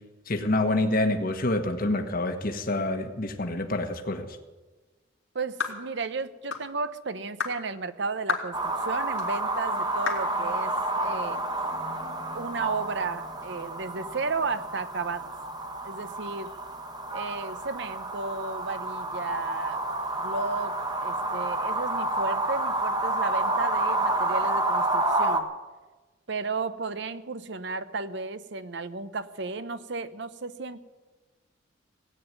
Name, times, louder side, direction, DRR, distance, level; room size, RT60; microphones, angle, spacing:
voice 1, 0.3-4.3, left 2 dB, 45° left, 6 dB, 1.4 m, -27 dB
voice 2, 5.3-11.4 12.3-15.3 15.8-16.5 17.1-19.9 20.2-25.5 26.3-30.8, right 4 dB, 60° right, 13 dB, 0.8 m, -34 dB
sound 1, 5.6-5.8 6.5-6.7 7.4-7.6 8.3-8.5 9.2-9.3 10.1-10.3, left 5 dB, 75° left, 2.5 m, -30 dB
sound 2, 8.5-25.4, right 2 dB, 20° right, 1.3 m, -29 dB
17.5 x 9.0 x 9.3 m, 1.2 s
head